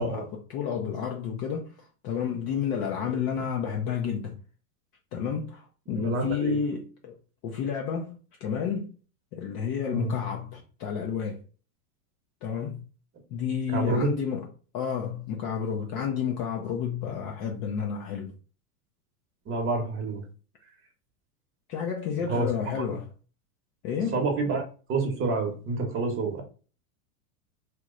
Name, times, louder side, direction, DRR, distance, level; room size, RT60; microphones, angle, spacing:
voice 1, 0.0-4.4 5.1-7.2 7.4-8.9 9.3-11.4 12.4-12.8 13.3-14.5 14.7-18.3 21.7-23.1 23.8-24.2, left 7 dB, 35° left, 0.4 m, -31 dB
voice 2, 5.9-6.6 9.9-10.1 13.7-14.1 19.5-20.2 22.3-22.5 22.8-22.9 24.1-26.4, right 3 dB, 25° right, 0.9 m, -28 dB
3.0 x 2.1 x 3.6 m
hypercardioid pair, 125°, 47 cm